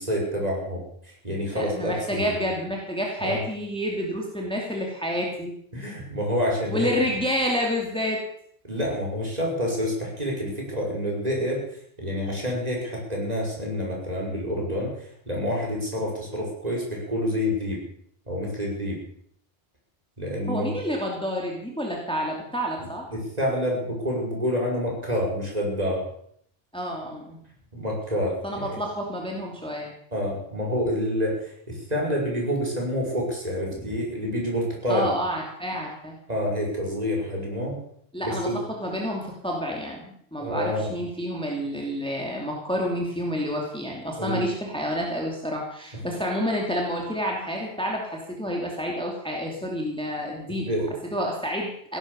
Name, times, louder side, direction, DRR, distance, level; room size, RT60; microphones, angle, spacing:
voice 1, 0.0-2.3 3.2-3.4 5.7-6.9 8.7-11.6 12.0-14.9 15.3-17.8 18.3-19.0 20.2-20.8 23.1-26.1 27.7-28.8 30.1-35.1 36.3-37.8 38.2-38.6 40.4-40.9 44.2-44.4 45.9-46.0 50.5-50.9, equal, 35° right, -2 dB, 5.7 m, -28 dB
voice 2, 1.5-5.5 6.7-8.2 20.5-23.1 26.7-27.4 28.4-29.9 34.9-36.2 38.1-38.5 38.8-50.7 51.1-52.0, equal, 5° left, -1 dB, 2.7 m, -29 dB
17.0 x 11.0 x 7.0 m, 0.66 s
omnidirectional pair, 1.2 m